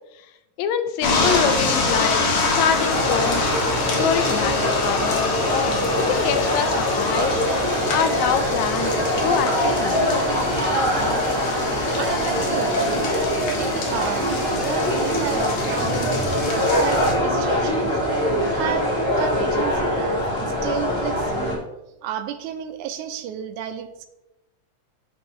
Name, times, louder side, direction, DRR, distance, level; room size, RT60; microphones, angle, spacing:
voice 1, 0.6-2.2 2.5-3.5 4.0-7.4 7.9-8.9 9.2-10.0, left 8 dB, 80° left, 10 dB, 1.8 m, -25 dB
sound 1, 1.0-17.1, left 3 dB, 60° left, 2.1 m, -26 dB
sound 2, 2.9-21.6, equal, 10° left, 1.7 m, -23 dB
sound 3, 6.1-15.7, left 2 dB, 40° left, 2.6 m, -39 dB
voice 2, 12.0-13.1 13.6-16.2 16.5-17.9 18.5-21.6 22.0-24.1, right 9 dB, 85° right, 9 dB, 2.1 m, -32 dB
10.5 x 5.5 x 3.1 m, 0.95 s
omnidirectional pair, 3.4 m